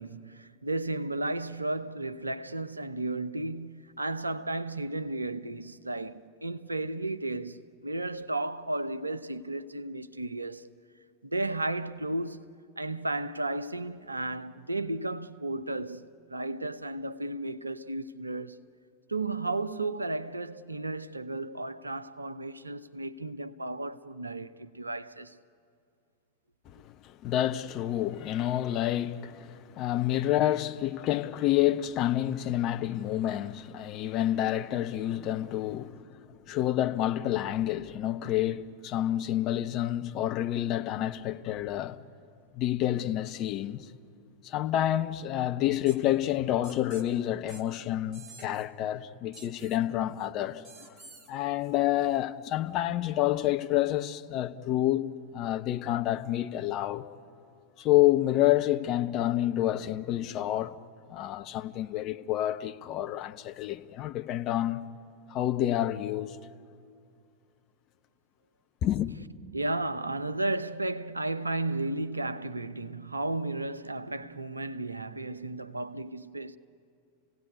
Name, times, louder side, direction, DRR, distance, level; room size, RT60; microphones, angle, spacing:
voice 1, 0.0-10.6 11.2-18.6 19.1-25.4 69.5-76.6, right 2 dB, 80° right, 0.8 m, -34 dB
voice 2, 27.0-36.2 36.5-42.0 42.5-43.9 44.4-50.9 51.3-57.1 57.8-60.8 61.1-64.8 65.3-66.4 68.8-69.1, left 13 dB, 35° left, 1.0 m, -28 dB
sound 1, 45.9-46.0 46.6-47.1 47.5-47.6 48.1-48.6 49.3-49.8 50.6-51.3, right 4 dB, 30° right, 2.4 m, -50 dB
29.5 x 17.0 x 9.7 m
figure-of-eight pair, 90°, 0 cm